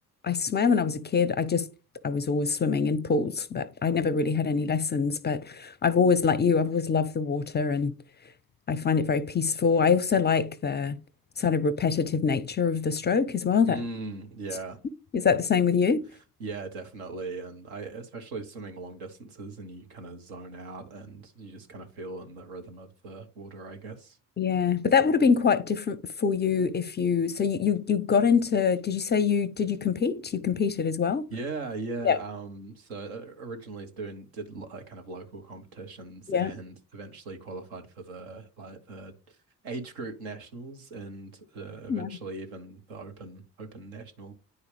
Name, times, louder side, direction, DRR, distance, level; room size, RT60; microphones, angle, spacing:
voice 1, 0.2-1.7 2.0-7.9 8.7-11.0 11.4-13.8 15.1-16.1 24.4-31.3 32.0-32.2 36.3-36.5 41.9-42.1, left 6 dB, 25° left, 0.5 m, -25 dB
voice 2, 13.7-14.8 16.4-24.2 31.3-39.4 39.6-44.3, right 3 dB, 70° right, 1.3 m, -40 dB
9.6 x 4.8 x 3.4 m
figure-of-eight pair, 50°, 44 cm